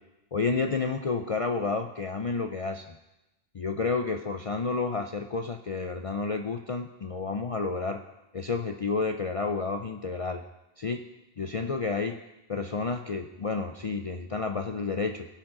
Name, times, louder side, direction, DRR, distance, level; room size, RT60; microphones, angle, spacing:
voice 1, 0.3-3.0 3.5-8.0 8.3-10.4 10.8-11.0 11.4-12.2 12.5-15.3, left 4 dB, 65° left, 5 dB, 0.3 m, -30 dB
17.5 x 7.1 x 3.8 m, 0.97 s
omnidirectional pair, 1.3 m